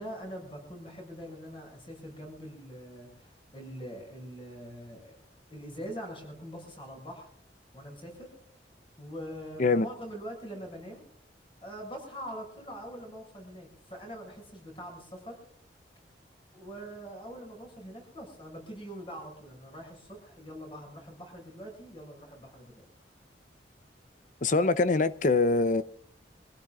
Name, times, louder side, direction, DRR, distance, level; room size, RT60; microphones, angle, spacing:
voice 1, 0.0-5.1 5.5-7.3 7.7-8.3 9.0-11.0 11.6-15.4 16.5-22.9, equal, 30° left, 6.6 m, -43 dB
voice 2, 24.4-25.8, left 3 dB, 45° left, 0.7 m, -24 dB
26.0 x 16.0 x 2.4 m
head